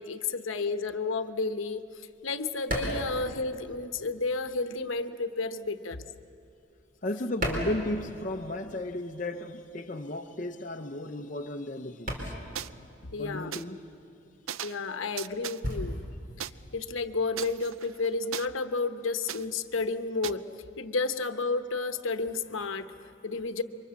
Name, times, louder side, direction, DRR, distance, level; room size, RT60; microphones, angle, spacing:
voice 1, 0.0-1.8 2.2-6.0 13.1-13.6 14.6-16.0 16.7-20.4 20.8-23.6, left 3 dB, 80° left, 9 dB, 1.0 m, -31 dB
sound 1, 1.3-4.2 4.5-8.6 8.9-17.6, equal, 45° right, 4.3 m, -38 dB
voice 2, 7.0-12.3 13.2-13.8, left 1 dB, 40° left, 4 dB, 0.7 m, -34 dB
sound 2, 12.6-12.7 13.5-13.6 14.5-14.9 15.2-15.6 16.4-16.5 17.4-18.5 19.3-19.5 20.2-20.3, right 10 dB, 90° right, 0.5 m, -37 dB
27.5 x 24.5 x 7.1 m, 2.7 s
head